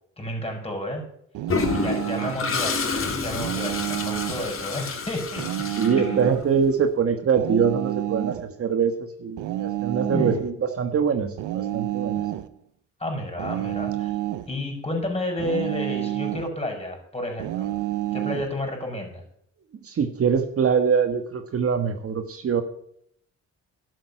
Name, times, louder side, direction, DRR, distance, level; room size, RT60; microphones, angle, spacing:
voice 1, 0.2-1.0 1.7-5.4 6.0-6.3 10.0-10.4 12.2-12.3 13.0-14.2 14.5-17.7 18.1-19.2, left 1 dB, 20° left, 2 dB, 5.7 m, -31 dB
sound 1, 1.3-2.5 3.3-4.5 5.4-6.5 7.4-8.5 9.4-10.5 11.4-12.5 13.4-14.5 15.4-16.5 17.4-18.5, right 15 dB, 90° right, 0.8 m, -29 dB
Toilet flush, 1.5-6.5, left 4 dB, 45° left, 2.8 m, -29 dB
voice 2, 5.8-12.2 19.8-22.6, right 6 dB, 50° right, 7 dB, 1.4 m, -23 dB
12.0 x 7.9 x 8.8 m, 0.69 s
cardioid pair, 90°, 30 cm